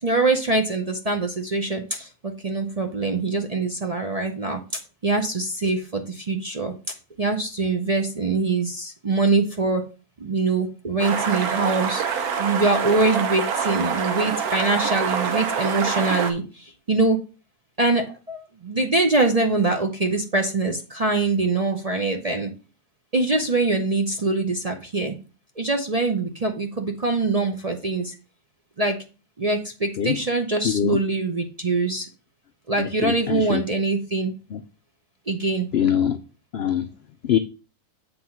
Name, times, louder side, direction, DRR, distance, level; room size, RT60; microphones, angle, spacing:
voice 1, 0.0-9.8 10.2-17.2 17.8-22.5 23.1-25.2 25.6-28.1 28.8-29.0 29.4-32.1 32.7-34.3 35.3-35.7, right 3 dB, 40° right, 0.6 m, -24 dB
sound 1, 11.0-16.3, right 6 dB, 70° right, 1.4 m, -25 dB
voice 2, 30.6-31.0 32.8-33.6 34.5-34.6 35.7-36.2 36.5-36.9 37.2-37.4, left 9 dB, 80° left, 0.5 m, -23 dB
7.8 x 3.6 x 5.8 m
omnidirectional pair, 1.6 m